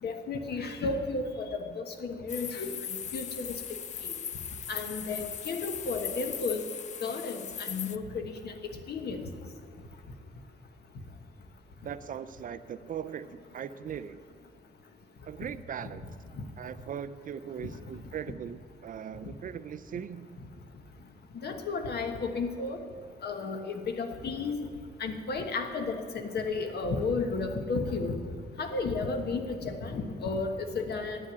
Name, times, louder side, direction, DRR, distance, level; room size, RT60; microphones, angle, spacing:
voice 1, 0.0-2.7 3.1-3.6 4.0-4.1 4.7-6.6 7.0-8.5 8.9-9.2 15.8-15.9 19.2-19.3 21.3-22.8 23.2-24.6 25.0-28.2 28.6-31.2, left 4 dB, 60° left, 5 dB, 1.3 m, -33 dB
sound 1, 2.3-8.0, left 8 dB, 40° left, 0.4 m, -38 dB
voice 2, 11.8-14.2 15.2-16.1 16.6-20.4, right 8 dB, 45° right, 13 dB, 0.4 m, -39 dB
9.9 x 8.7 x 9.3 m, 2.2 s
wide cardioid pair, 175°, 19 cm